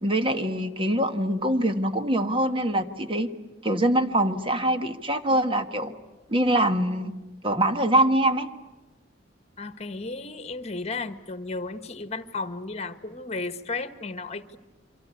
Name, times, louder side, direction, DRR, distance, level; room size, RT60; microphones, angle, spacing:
voice 1, 0.0-3.3 3.6-5.9 6.3-7.1 7.4-8.5, right 1 dB, 30° right, 8 dB, 1.4 m, -24 dB
voice 2, 9.6-14.6, left 3 dB, 35° left, 11 dB, 1.5 m, -34 dB
28.5 x 24.5 x 8.4 m, 1.2 s
head